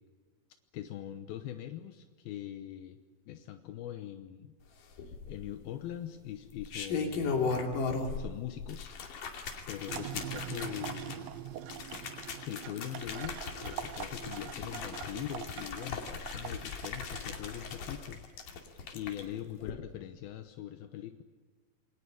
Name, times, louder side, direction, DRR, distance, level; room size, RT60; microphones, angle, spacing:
voice 1, 0.7-3.0 3.3-4.5 5.0-7.7 8.1-8.9 9.7-11.3 12.5-21.2, left 11 dB, 80° left, 8 dB, 2.8 m, -42 dB
sound 1, 5.0-5.6 6.5-8.3 8.6-19.2 19.6-19.7, left 4 dB, 65° left, 4.0 m, -37 dB
sound 2, 9.9-17.8, right 10 dB, 90° right, 1.4 m, -43 dB
27.5 x 23.0 x 8.5 m, 1.5 s
omnidirectional pair, 4.3 m